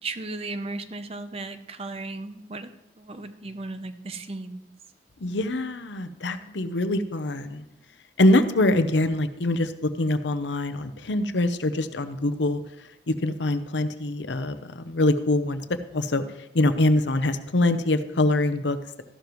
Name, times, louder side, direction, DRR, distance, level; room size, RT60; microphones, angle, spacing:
voice 1, 0.0-2.7 3.0-4.7, right 3 dB, 35° right, 10 dB, 0.6 m, -35 dB
voice 2, 5.2-7.6 8.2-12.6 13.1-15.6 15.9-16.2 16.5-18.8, left 1 dB, 85° left, 10 dB, 0.8 m, -24 dB
13.5 x 12.0 x 3.1 m, 0.96 s
head